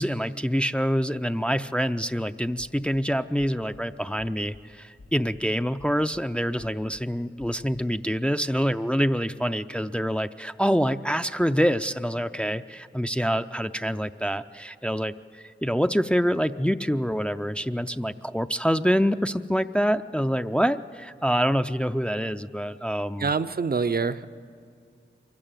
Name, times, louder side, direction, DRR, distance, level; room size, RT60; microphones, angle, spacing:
voice 1, 0.0-23.3, equal, 5° left, 9 dB, 0.5 m, -26 dB
sound 1, 2.6-3.0 3.4-3.8 4.2-4.6 5.0-5.4 5.8-6.2 6.6-7.0 7.4-7.8, left 2 dB, 75° left, 1.8 m, -51 dB
voice 2, 23.2-24.3, right 5 dB, 50° right, 12 dB, 0.6 m, -25 dB
23.5 x 15.5 x 9.1 m, 2.3 s
wide cardioid pair, 50°, 20 cm